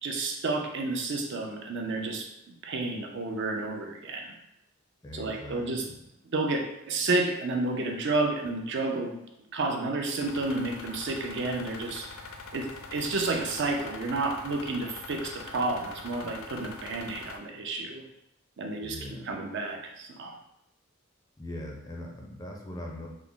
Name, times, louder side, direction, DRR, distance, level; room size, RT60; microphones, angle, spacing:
voice 1, 0.0-2.3 2.6-4.4 5.1-5.9 6.3-6.6 6.9-9.2 9.5-12.1 12.5-18.0 18.6-19.0 19.2-20.3, right 2 dB, 60° right, 2 dB, 0.5 m, -30 dB
voice 2, 5.0-6.0 18.8-19.3 21.4-23.1, left 1 dB, 20° left, 0 dB, 0.4 m, -41 dB
sound 1, 10.2-17.4, left 3 dB, 75° left, 0.4 m, -43 dB
3.4 x 2.0 x 3.7 m, 0.84 s
head